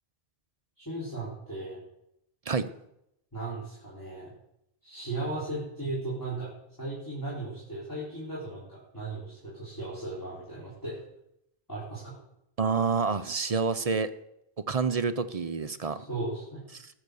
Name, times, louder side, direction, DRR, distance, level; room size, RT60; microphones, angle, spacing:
voice 1, 0.8-1.8 3.3-4.3 4.8-6.5 6.8-11.0 11.7-12.2 16.0-16.6, right 2 dB, 20° left, -8 dB, 4.3 m, -36 dB
voice 2, 12.6-14.1 14.7-16.0 16.8-16.9, right 5 dB, 45° right, 11 dB, 0.6 m, -28 dB
19.5 x 6.7 x 6.8 m, 0.81 s
omnidirectional pair, 1.1 m